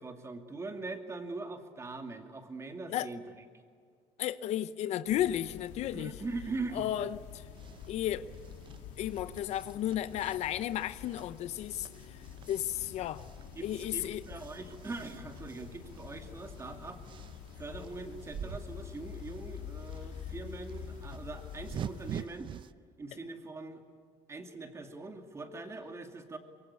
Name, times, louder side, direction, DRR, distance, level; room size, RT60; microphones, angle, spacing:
voice 1, 0.0-3.2 5.9-6.9 13.6-17.0 17.6-22.5 23.0-23.8 24.3-26.4, right 3 dB, 25° right, 2.5 m, -42 dB
voice 2, 4.2-6.1 6.7-7.2 7.9-8.2 9.0-11.9 12.5-13.2 13.6-14.2, left 12 dB, 65° left, 0.8 m, -33 dB
sound 1, 5.0-22.3, left 8 dB, 85° left, 3.2 m, -47 dB
sound 2, 7.5-22.7, right 9 dB, 40° right, 0.7 m, -48 dB
24.0 x 23.0 x 8.5 m
cardioid pair, 125°, 12 cm